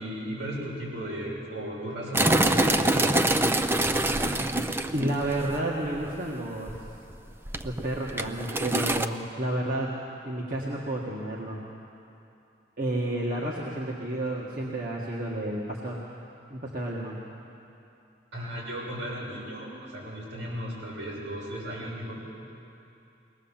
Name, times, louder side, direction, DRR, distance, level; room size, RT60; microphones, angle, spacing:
voice 1, 0.0-3.3 18.3-22.2, equal, 80° right, -5 dB, 7.5 m, -35 dB
sound 1, 2.1-5.6 5.9-6.1 6.7-7.1 7.5-9.1, right 1 dB, 10° right, 0.5 m, -25 dB
voice 2, 4.9-6.7 7.6-11.6 12.8-16.0 16.5-17.2, right 1 dB, 50° right, -4 dB, 1.8 m, -31 dB
21.0 x 19.5 x 7.4 m, 2.7 s
head